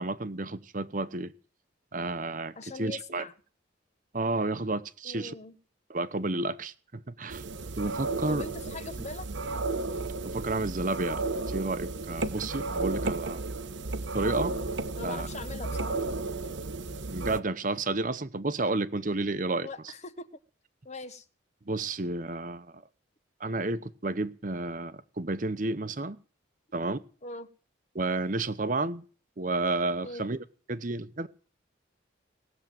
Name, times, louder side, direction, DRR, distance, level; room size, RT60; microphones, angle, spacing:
voice 1, 0.0-1.3 1.9-3.2 4.1-5.3 5.9-7.4 7.8-8.5 10.2-13.4 14.1-14.5 15.0-15.3 17.1-19.7 21.7-22.8 23.4-26.2 26.7-27.0 27.9-29.0 29.4-31.3, right 2 dB, 45° right, 0.9 m, -31 dB
voice 2, 2.6-3.3 5.0-5.6 8.3-9.3 15.0-16.0 19.6-20.3 20.8-21.2 27.2-27.5 30.0-30.3, left 2 dB, 35° left, 1.0 m, -41 dB
sound 1, 7.3-17.4, right 3 dB, 70° right, 0.9 m, -33 dB
19.0 x 7.4 x 9.0 m
head